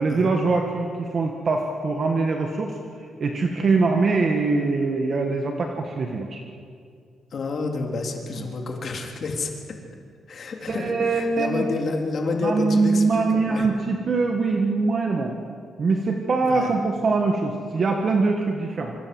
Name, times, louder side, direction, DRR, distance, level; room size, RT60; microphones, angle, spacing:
voice 1, 0.0-2.8 3.2-6.4 8.4-8.5 10.7-11.7 12.4-15.3 15.8-18.9, right 3 dB, 35° right, 3 dB, 1.7 m, -23 dB
voice 2, 7.3-9.5 10.3-13.7 16.4-16.7, left 3 dB, 40° left, 2 dB, 3.5 m, -29 dB
26.0 x 25.5 x 7.9 m, 2.3 s
wide cardioid pair, 175°, 0 cm